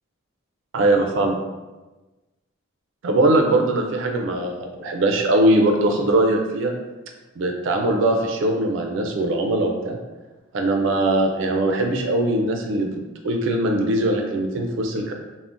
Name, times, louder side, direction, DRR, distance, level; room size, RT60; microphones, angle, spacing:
voice 1, 0.7-1.4 3.0-6.7 7.4-10.0 10.5-12.9 13.2-15.1, right 1 dB, 60° right, 3 dB, 0.4 m, -21 dB
2.4 x 2.0 x 3.5 m, 1.2 s
head